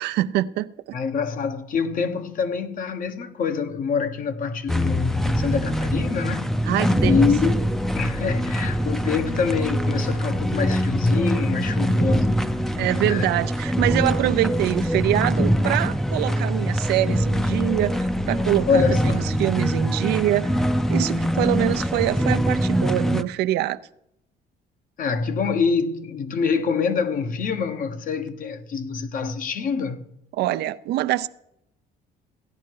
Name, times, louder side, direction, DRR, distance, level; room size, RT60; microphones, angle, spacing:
voice 1, 0.0-1.0 6.7-7.3 12.8-23.8 30.4-31.3, right 14 dB, 75° right, 0.5 m, -24 dB
voice 2, 0.9-6.6 7.1-7.7 7.9-12.3 13.0-13.3 18.7-19.4 25.0-30.0, left 5 dB, 55° left, 1.2 m, -25 dB
sound 1, 4.7-23.2, equal, ahead, 0.6 m, -23 dB
16.0 x 10.5 x 4.7 m
cardioid pair, 110°, 17 cm